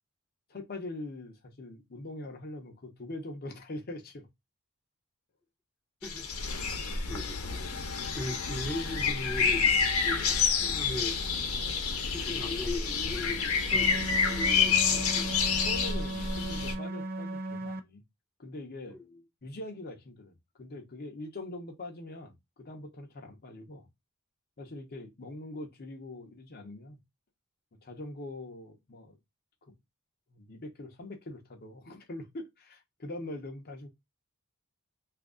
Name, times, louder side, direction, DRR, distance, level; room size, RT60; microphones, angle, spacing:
voice 1, 0.5-4.3 14.9-15.0 15.6-18.0 18.4-19.0 19.4-23.9 24.6-27.0 27.8-29.2 30.3-33.9, left 2 dB, 45° left, 0.7 m, -43 dB
sound 1, 6.0-16.7, left 5 dB, 85° left, 0.8 m, -28 dB
voice 2, 7.1-7.7 8.1-9.7 10.0-11.2 12.1-15.4 18.9-19.0, left 1 dB, ahead, 0.8 m, -39 dB
sound 2, 13.7-17.8, right 1 dB, 45° right, 0.4 m, -36 dB
2.8 x 2.5 x 3.6 m
head